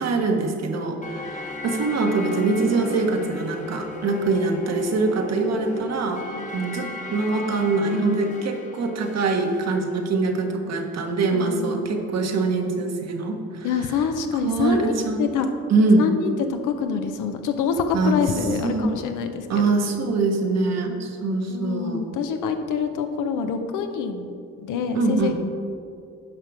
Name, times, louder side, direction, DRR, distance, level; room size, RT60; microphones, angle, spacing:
voice 1, 0.0-6.2 6.5-13.7 14.4-15.2 15.7-16.1 17.9-18.2 18.6-19.0 19.5-22.1 24.9-25.3, right 3 dB, 60° right, 3 dB, 1.2 m, -23 dB
sound 1, 1.0-9.8, left 3 dB, 25° left, 0.9 m, -37 dB
voice 2, 6.3-6.7 11.3-12.0 13.6-14.9 15.2-15.5 16.0-19.5 21.5-24.3 24.6-25.3, left 6 dB, 85° left, 7 dB, 0.8 m, -26 dB
9.9 x 5.8 x 4.9 m, 2.5 s
cardioid pair, 90°, 30 cm